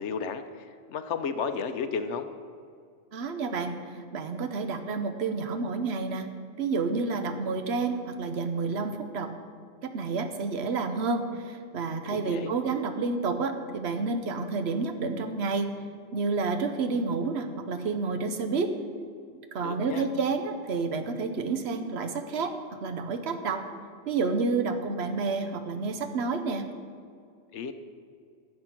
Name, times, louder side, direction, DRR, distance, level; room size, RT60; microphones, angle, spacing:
voice 1, 0.0-2.3 12.1-12.5 19.6-20.1 27.5-27.7, left 6 dB, 75° left, 10 dB, 0.9 m, -33 dB
voice 2, 3.1-6.3 6.6-9.3 9.8-15.7 16.1-18.7 19.5-22.5 22.8-23.6 24.1-26.7, right 4 dB, 65° right, 7 dB, 1.1 m, -29 dB
10.5 x 7.6 x 5.8 m, 2.3 s
omnidirectional pair, 1.2 m